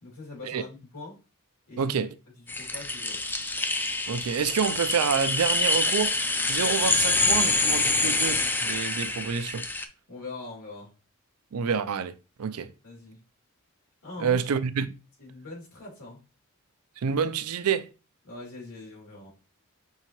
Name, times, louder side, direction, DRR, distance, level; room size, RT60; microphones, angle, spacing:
voice 1, 0.0-1.2 1.7-1.9 2.5-3.2 10.1-10.9 12.8-13.2 14.0-14.4 15.2-16.2 18.2-19.3, left 3 dB, 85° left, 2.6 m, -42 dB
voice 2, 1.8-2.1 4.1-6.2 6.5-9.7 11.5-12.7 14.2-14.9 17.0-17.9, right 6 dB, 80° right, 0.4 m, -28 dB
sound 1, 2.5-9.9, left 2 dB, 10° left, 0.3 m, -26 dB
5.5 x 2.8 x 3.0 m
head